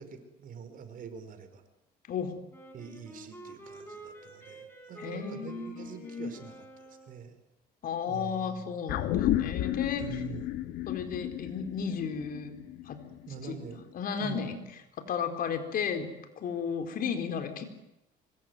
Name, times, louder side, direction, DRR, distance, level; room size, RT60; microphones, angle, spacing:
voice 1, 0.0-1.6 2.7-6.5 6.8-7.3 8.1-8.6 10.0-10.5 13.3-13.8 14.2-14.5, right 6 dB, 55° right, 9 dB, 4.6 m, -44 dB
Wind instrument woodwind instrument, 2.5-7.2, right 2 dB, 10° left, 7.9 m, -48 dB
voice 2, 5.0-6.3 7.8-10.0 10.9-12.5 12.9-13.0 13.4-13.6 13.9-14.6 15.0-17.7, left 6 dB, 60° left, 7 dB, 4.3 m, -34 dB
sound 1, 8.9-13.5 13.8-13.9, left 13 dB, 85° left, 1.8 m, -32 dB
25.0 x 22.0 x 9.5 m, 0.89 s
cardioid pair, 110°, 17 cm